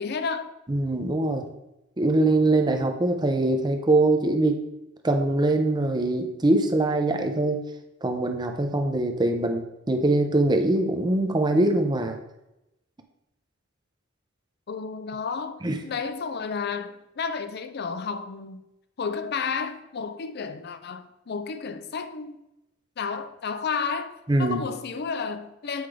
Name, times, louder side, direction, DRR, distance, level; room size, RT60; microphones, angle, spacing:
voice 1, 0.0-0.5 14.7-18.7 19.0-22.4 23.0-25.9, left 5 dB, 50° left, 0.5 m, -32 dB
voice 2, 0.7-1.5 2.0-4.6 5.0-7.6 8.0-12.2 15.6-15.8 24.3-24.6, right 2 dB, 20° right, 0.7 m, -23 dB
7.9 x 5.0 x 3.3 m
head